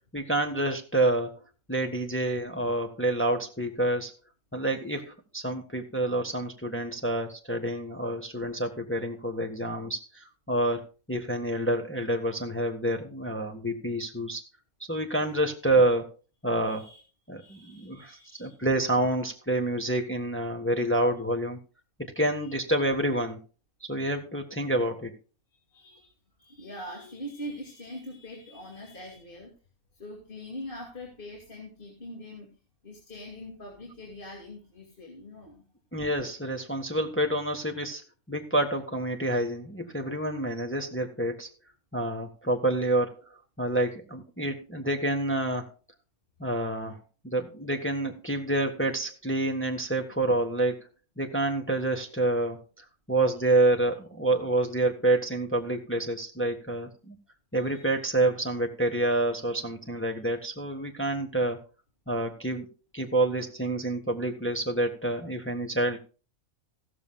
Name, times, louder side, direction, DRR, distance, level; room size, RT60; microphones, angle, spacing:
voice 1, 0.1-1.4 1.7-4.1 4.5-10.8 11.1-14.4 14.9-16.1 16.4-16.9 17.3-21.6 22.0-23.4 23.9-25.1 35.9-41.5 41.9-43.1 43.6-45.7 46.4-47.0 47.2-50.9 51.2-57.2 57.5-61.6 62.1-62.7 62.9-66.0, right 1 dB, 10° left, 3 dB, 1.3 m, -28 dB
voice 2, 16.6-17.0 17.4-18.5 22.2-22.5 25.5-26.1 26.4-29.5 29.9-32.5 32.8-35.6 53.2-53.7 57.5-57.9, left 1 dB, 40° left, 0 dB, 2.7 m, -43 dB
15.0 x 13.5 x 2.3 m, 0.36 s
omnidirectional pair, 1.5 m